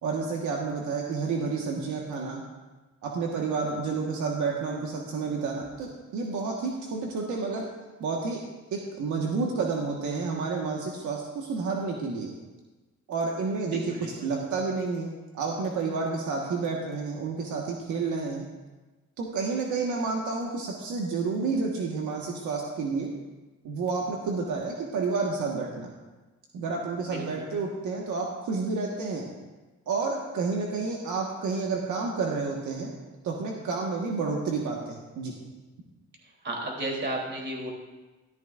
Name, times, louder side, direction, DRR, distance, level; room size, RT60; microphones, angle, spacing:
voice 1, 0.0-2.4 3.0-7.7 8.0-8.4 8.7-12.3 13.1-18.4 19.2-23.1 23.6-25.9 26.5-29.3 29.9-32.9 33.2-35.3, right 4 dB, 75° right, -1 dB, 1.5 m, -30 dB
voice 2, 13.7-14.1 27.1-27.2 36.4-37.7, right 1 dB, 35° right, -1 dB, 3.3 m, -33 dB
13.5 x 13.5 x 2.5 m, 1.2 s
cardioid pair, 90°, 30 cm